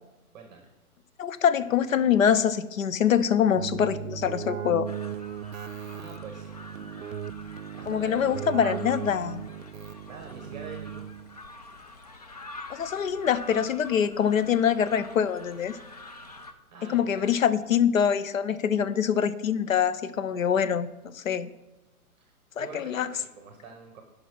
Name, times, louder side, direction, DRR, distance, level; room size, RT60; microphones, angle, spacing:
voice 1, 0.3-0.7 5.6-7.3 7.7-8.5 10.1-11.1 16.7-17.3 22.2-24.0, right 5 dB, 30° right, 3 dB, 1.1 m, -45 dB
voice 2, 1.2-4.9 7.9-9.4 12.7-15.8 16.8-20.9 21.1-21.5 22.6-23.1, left 8 dB, 60° left, 13 dB, 0.7 m, -24 dB
Keyboard (musical), 3.5-11.4, right 9 dB, 60° right, 0.5 m, -37 dB
sound 1, 4.9-16.5, left 2 dB, 30° left, 0.4 m, -46 dB
10.5 x 5.4 x 6.0 m, 1.0 s
figure-of-eight pair, 125°, 45 cm